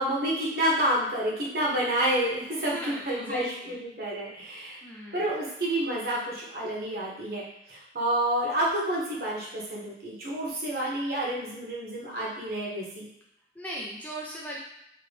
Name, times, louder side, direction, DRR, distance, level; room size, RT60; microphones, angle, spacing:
voice 1, 0.0-4.8 5.1-7.4 7.7-13.1, right 1 dB, 60° right, -5 dB, 1.3 m, -29 dB
voice 2, 2.6-3.8 4.8-5.3 13.5-14.6, equal, 10° left, -4 dB, 0.5 m, -38 dB
3.8 x 3.0 x 3.3 m, 0.78 s
head